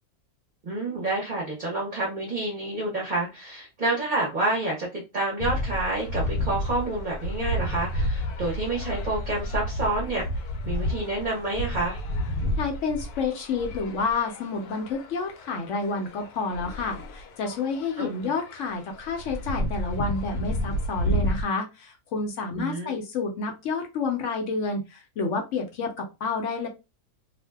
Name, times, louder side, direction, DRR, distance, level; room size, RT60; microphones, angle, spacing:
voice 1, 0.6-10.2 10.7-12.0 18.0-18.1 22.6-23.0, right 2 dB, 40° right, -3 dB, 0.8 m, -28 dB
sound 1, 5.4-21.4, equal, 85° left, 1.1 m, -31 dB
voice 2, 12.6-26.7, left 4 dB, 65° left, 3 dB, 0.8 m, -29 dB
2.6 x 2.1 x 3.3 m, 0.26 s
omnidirectional pair, 1.6 m